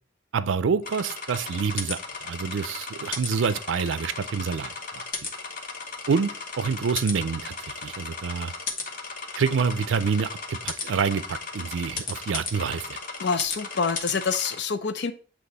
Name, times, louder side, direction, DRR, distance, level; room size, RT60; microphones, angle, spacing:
voice 1, 0.3-5.0 6.1-8.5 9.4-13.0, right 5 dB, 90° right, 14 dB, 0.4 m, -27 dB
sound 1, 0.8-14.6, left 4 dB, 50° left, 0.9 m, -36 dB
voice 2, 13.2-15.1, left 5 dB, 65° left, 11 dB, 0.5 m, -26 dB
7.8 x 3.0 x 4.1 m, 0.40 s
head